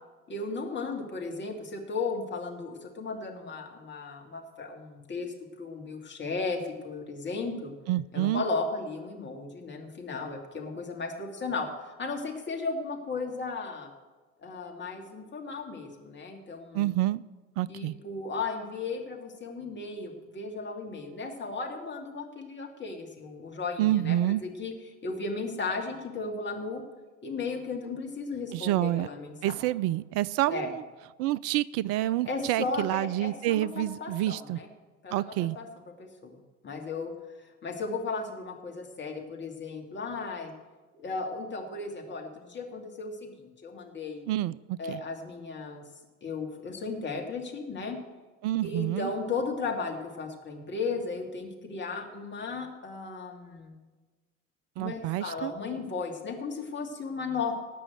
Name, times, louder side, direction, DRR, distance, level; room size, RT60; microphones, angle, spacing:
voice 1, 0.3-7.7 8.1-13.9 14.4-16.8 17.7-24.7 25.0-26.8 27.2-29.3 30.5-30.7 32.3-34.7 35.0-35.7 36.0-36.3 36.6-37.1 37.6-40.5 40.9-44.3 44.8-45.8 46.2-48.0 48.6-53.7 54.8-57.6, left 4 dB, 30° left, 1 dB, 2.7 m, -35 dB
voice 2, 7.9-8.4 16.7-17.2 17.6-18.0 23.8-24.4 28.5-29.1 29.4-30.8 31.2-34.6 35.1-35.6 44.3-45.0 48.4-49.1 54.8-55.5, right 14 dB, 40° right, 20 dB, 0.4 m, -28 dB
18.0 x 6.1 x 7.9 m, 1.2 s
figure-of-eight pair, 65°, 39 cm